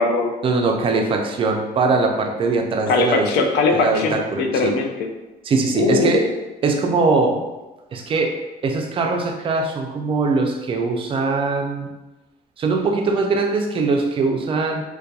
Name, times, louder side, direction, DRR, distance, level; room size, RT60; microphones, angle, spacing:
voice 1, 0.4-3.3 3.7-4.8 5.4-6.3 6.6-7.4 7.9-11.9 12.6-14.8, right 3 dB, 30° right, 2 dB, 0.4 m, -21 dB
voice 2, 2.9-5.1 5.7-6.2, left 4 dB, 80° left, 4 dB, 0.4 m, -20 dB
2.7 x 2.2 x 2.3 m, 1.1 s
cardioid pair, 110°, 17 cm